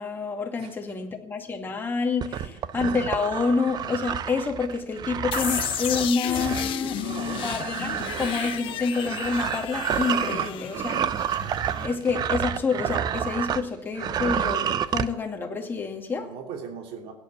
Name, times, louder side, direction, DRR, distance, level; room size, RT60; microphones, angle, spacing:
voice 1, 0.0-7.0 7.4-11.3 11.8-16.3, left 4 dB, 20° left, 2 dB, 2.3 m, -28 dB
sound 1, 2.2-13.7 13.9-15.1, right 9 dB, 45° right, 0.7 m, -29 dB
sound 2, 5.3-12.1, left 12 dB, 60° left, 1.0 m, -33 dB
voice 2, 6.8-8.9 10.2-10.5 16.2-17.1, right 6 dB, 75° right, 3 dB, 3.0 m, -41 dB
17.0 x 9.6 x 8.5 m, 0.75 s
cardioid pair, 150°, 10 cm